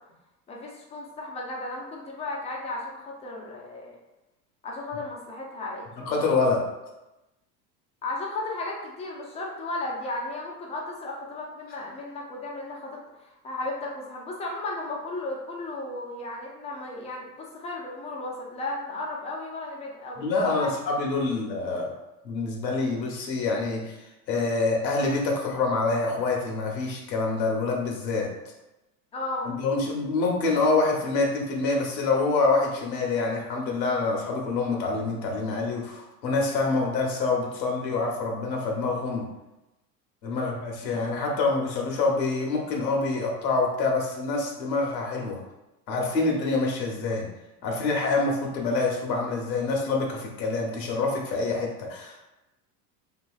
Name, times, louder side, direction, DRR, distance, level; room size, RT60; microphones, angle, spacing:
voice 1, 0.5-4.0 4.6-5.9 8.0-20.7 21.2-21.4 29.1-29.5 40.3-40.5, left 2 dB, 15° left, -1 dB, 0.3 m, -35 dB
voice 2, 6.0-6.6 20.2-21.9 22.2-24.0 24.3-28.5 29.4-39.3 40.2-45.4 45.9-47.3 47.6-52.2, left 3 dB, 85° left, 0 dB, 0.9 m, -26 dB
2.8 x 2.7 x 2.3 m, 0.99 s
hypercardioid pair, 85°, 49 cm